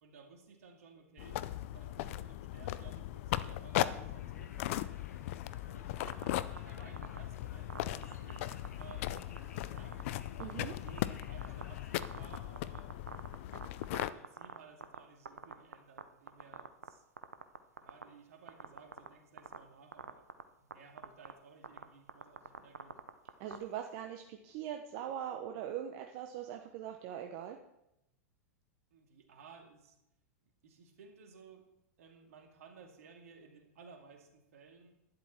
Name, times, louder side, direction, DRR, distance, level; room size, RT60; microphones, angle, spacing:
voice 1, 0.0-4.8 5.6-6.2 6.6-10.0 10.7-12.9 13.9-17.0 17.7-20.3 20.6-23.0 28.9-30.0 30.6-31.6 32.0-34.9, right 5 dB, 70° right, 4 dB, 2.3 m, -57 dB
sound 1, 1.2-14.1, left 14 dB, 55° left, 0.6 m, -38 dB
Conversation, 4.1-12.0, left 5 dB, 80° left, 1.3 m, -59 dB
sound 2, 6.1-6.6 7.0-7.2 7.7-8.9 9.2-9.4 9.8-10.0 10.4-10.5 10.9-11.6 12.0-15.0 15.2-16.0 16.3-16.9 17.2-18.0 18.5-19.1 19.4-19.6 19.9-20.4 20.7-20.8 21.0-21.3 21.6-21.8 22.1-23.6, right 6 dB, 85° right, 0.8 m, -43 dB
voice 2, 10.4-10.7 23.4-27.6, right 10 dB, 50° right, 4 dB, 1.0 m, -41 dB
12.0 x 10.5 x 4.4 m, 0.85 s
hypercardioid pair, 100°, 8 cm